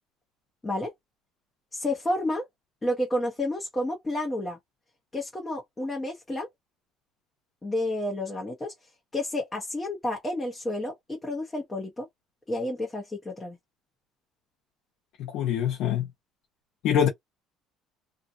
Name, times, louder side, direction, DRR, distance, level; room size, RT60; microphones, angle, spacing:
voice 1, 1.7-2.4 2.8-4.6 5.1-6.5 7.6-8.7 9.1-12.1 12.5-13.6, left 1 dB, 15° left, 1.0 m, -30 dB
voice 2, 15.2-16.1 16.8-17.1, left 9 dB, 70° left, 0.9 m, -24 dB
2.7 x 2.4 x 2.6 m
cardioid pair, 115°, 0 cm